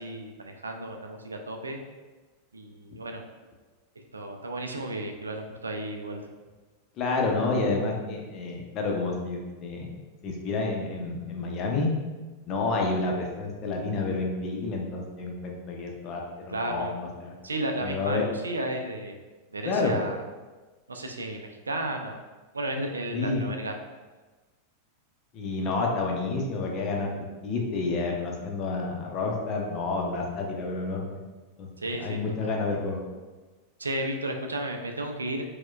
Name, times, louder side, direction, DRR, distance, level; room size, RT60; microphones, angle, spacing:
voice 1, 0.0-1.8 2.5-3.2 4.1-6.2 16.5-16.9 17.4-19.2 19.5-20.2 20.9-22.2 22.5-23.8 31.8-32.5 33.8-35.4, right 1 dB, 75° right, 4 dB, 0.3 m, -33 dB
voice 2, 7.0-9.9 10.2-11.9 12.5-17.3 17.8-18.2 19.6-20.0 23.1-23.5 25.3-27.1 27.4-31.2 31.6-31.7 32.0-33.0, left 3 dB, 35° left, 0 dB, 0.6 m, -29 dB
4.3 x 2.1 x 2.2 m, 1.3 s
figure-of-eight pair, 90°, 0 cm